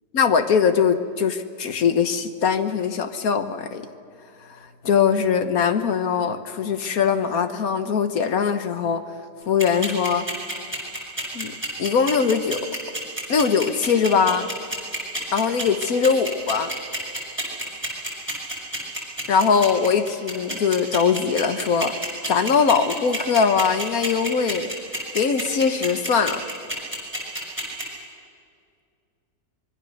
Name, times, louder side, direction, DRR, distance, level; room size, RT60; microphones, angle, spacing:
voice 1, 0.1-3.9 4.8-9.0 9.5-10.2 11.3-11.5 11.8-12.7 13.3-14.5 15.3-16.7 19.3-21.9 22.3-24.7 25.1-26.4, left 6 dB, 55° left, 9 dB, 1.5 m, -21 dB
sound 1, 9.6-27.8, right 1 dB, 5° right, 6.1 m, -28 dB
25.0 x 22.5 x 6.6 m, 2.3 s
omnidirectional pair, 1.9 m